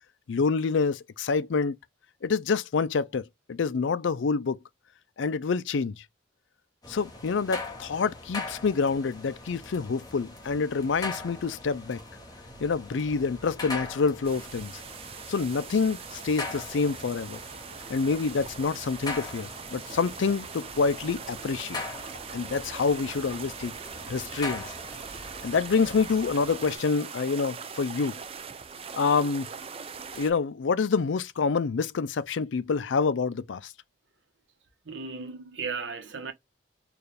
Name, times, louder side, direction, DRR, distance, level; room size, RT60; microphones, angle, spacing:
voice 1, 0.3-1.8 2.2-4.6 5.2-6.0 6.9-12.0 12.6-14.8 15.3-17.4 17.9-21.8 22.3-23.8 24.1-24.6 25.4-28.2 29.0-29.5 30.1-33.7, left 5 dB, 70° left, 0.4 m, -27 dB
sound 1, 6.8-26.7, left 2 dB, 20° left, 1.2 m, -41 dB
sound 2, 14.2-30.3, right 6 dB, 30° right, 0.4 m, -41 dB
voice 2, 34.8-36.3, right 5 dB, 70° right, 1.0 m, -35 dB
4.6 x 2.5 x 3.3 m
head